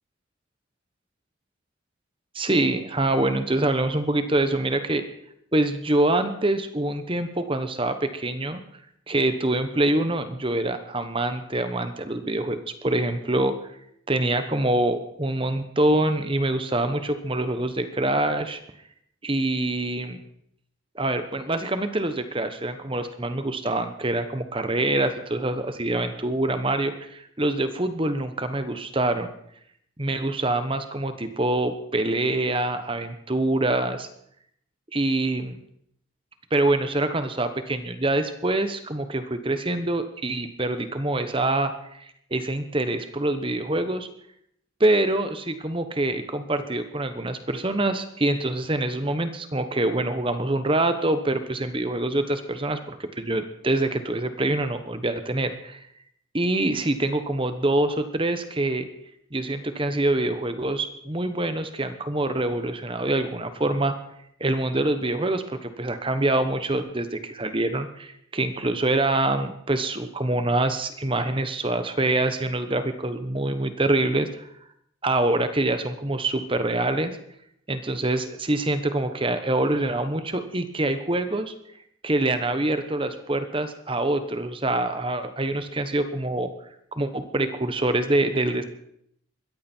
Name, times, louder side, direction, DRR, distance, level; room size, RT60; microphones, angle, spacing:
voice 1, 2.3-5.0 5.5-8.6 9.1-13.5 14.1-18.6 19.2-20.2 20.9-29.3 30.0-34.1 34.9-35.5 36.5-44.1 44.8-55.8 56.3-58.9 59.3-63.9 64.4-74.3 75.0-77.2 77.7-81.5 82.0-86.5 86.9-88.6, right 2 dB, 25° right, 9 dB, 1.1 m, -25 dB
21.0 x 14.5 x 4.5 m, 0.72 s
head